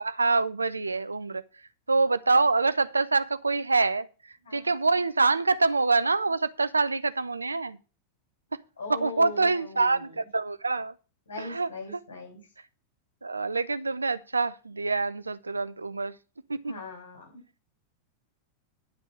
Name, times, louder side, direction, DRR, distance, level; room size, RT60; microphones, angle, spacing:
voice 1, 0.0-1.4 1.9-4.1 4.5-7.8 8.9-10.9 11.4-11.7 13.2-16.1 16.5-16.7, right 3 dB, 80° right, 0.6 m, -25 dB
voice 2, 4.4-4.7 8.8-10.2 11.3-12.4 16.6-17.4, left 2 dB, 70° left, 5.8 m, -40 dB
11.5 x 5.3 x 6.3 m
figure-of-eight pair, 90°, 0 cm